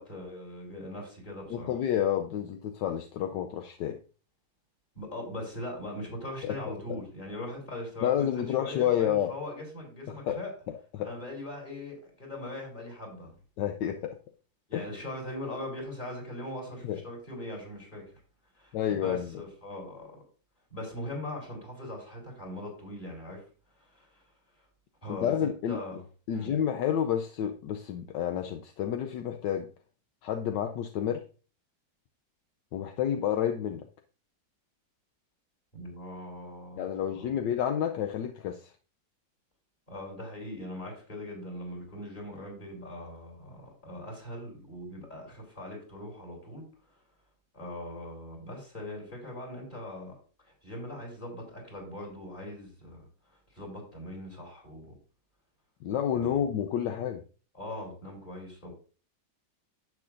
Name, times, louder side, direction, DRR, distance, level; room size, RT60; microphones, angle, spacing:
voice 1, 0.0-1.7 4.9-10.5 11.0-13.3 14.7-18.2 18.5-20.2 20.7-23.4 23.7-24.2 24.6-24.7 25.0-26.0 26.3-26.5 35.7-37.4 39.9-47.0 47.5-50.1 50.4-54.9 56.1-56.4 57.5-58.7, left 1 dB, 25° left, -1 dB, 4.2 m, -41 dB
voice 2, 1.5-4.0 6.4-6.6 8.0-9.3 10.1-10.4 10.9-11.1 13.6-14.1 14.7-14.8 16.8-17.0 18.7-19.4 25.1-25.8 26.3-29.7 30.2-31.2 32.7-33.8 36.8-38.7 55.8-57.2, left 9 dB, 75° left, 6 dB, 1.3 m, -29 dB
10.5 x 8.4 x 2.6 m, 0.37 s
omnidirectional pair, 2.0 m